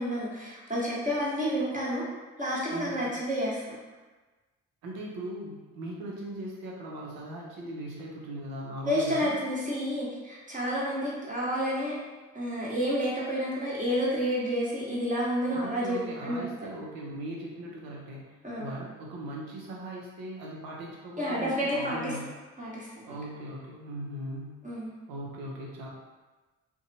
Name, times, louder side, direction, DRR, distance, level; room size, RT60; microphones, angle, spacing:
voice 1, 0.0-2.0 2.4-3.8 8.8-11.9 12.3-16.5 18.4-18.8 21.2-22.2 22.6-23.2 24.6-24.9, equal, 20° right, -6 dB, 1.1 m, -30 dB
voice 2, 2.7-3.2 4.8-9.3 15.5-18.3 18.6-22.2 23.1-24.6 25.1-25.9, right 1 dB, 75° right, -3 dB, 0.7 m, -39 dB
2.6 x 2.2 x 2.7 m, 1.2 s
supercardioid pair, 50°, 35 cm